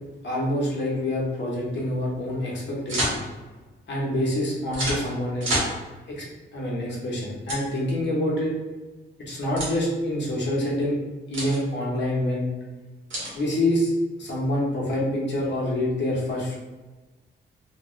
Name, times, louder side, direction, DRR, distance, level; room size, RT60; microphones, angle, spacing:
voice 1, 0.2-3.2 3.9-5.7 6.1-6.2 6.5-8.5 9.2-11.0 11.3-12.5 13.3-13.9 14.2-16.6, left 1 dB, 60° left, -4 dB, 1.1 m, -26 dB
sound 1, 2.9-3.2 4.7-5.0 5.4-5.7 7.5-7.6 9.6-9.7 11.3-11.6 13.1-13.4, right 1 dB, 75° right, 1.5 m, -27 dB
3.2 x 2.4 x 3.1 m, 1.2 s
wide cardioid pair, 150°, 20 cm